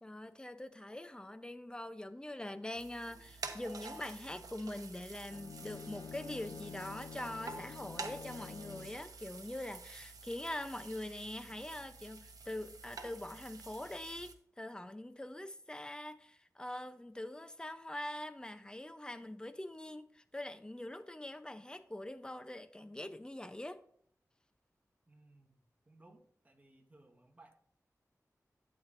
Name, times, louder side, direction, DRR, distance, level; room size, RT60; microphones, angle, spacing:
voice 1, 0.0-23.8, left 1 dB, 15° left, 0.7 m, -44 dB
sound 1, 2.7-14.3, right 3 dB, 85° right, 0.9 m, -49 dB
Bowed string instrument, 5.2-9.1, left 7 dB, 85° left, 0.4 m, -49 dB
voice 2, 25.1-27.6, right 2 dB, 25° right, 1.5 m, -62 dB
12.0 x 9.0 x 2.6 m
wide cardioid pair, 85°, 6 cm